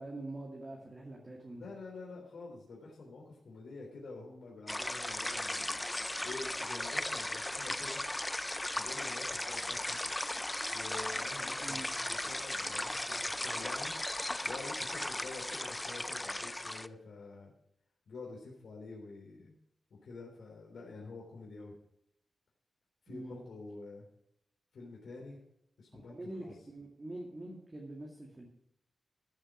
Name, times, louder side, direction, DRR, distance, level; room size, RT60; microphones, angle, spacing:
voice 1, 0.0-1.7 11.6-11.9 23.1-23.4 25.9-28.5, right 2 dB, 25° right, -2 dB, 2.1 m, -45 dB
voice 2, 1.5-5.7 6.2-8.0 8.8-10.0 10.7-13.9 14.4-17.5 18.1-19.5 19.9-21.8 23.1-24.1 24.7-25.4 25.8-26.6, left 3 dB, 75° left, -2 dB, 3.4 m, -48 dB
sound 1, 4.7-16.9, left 1 dB, 10° left, 0.4 m, -37 dB
14.5 x 7.7 x 5.0 m, 0.75 s
wide cardioid pair, 175°, 0 cm